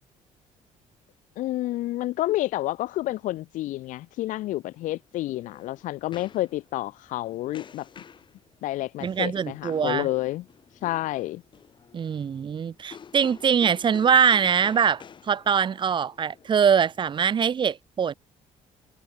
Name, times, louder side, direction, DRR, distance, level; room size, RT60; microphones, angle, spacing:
voice 1, 1.4-7.9 8.6-10.5 10.8-11.4, left 16 dB, 80° left, 3.0 m, -29 dB
sound 1, 4.9-17.4, left 7 dB, 35° left, 7.3 m, -50 dB
voice 2, 9.0-10.1 11.9-18.1, right 7 dB, 35° right, 2.2 m, -23 dB
cardioid pair, 130°, 13 cm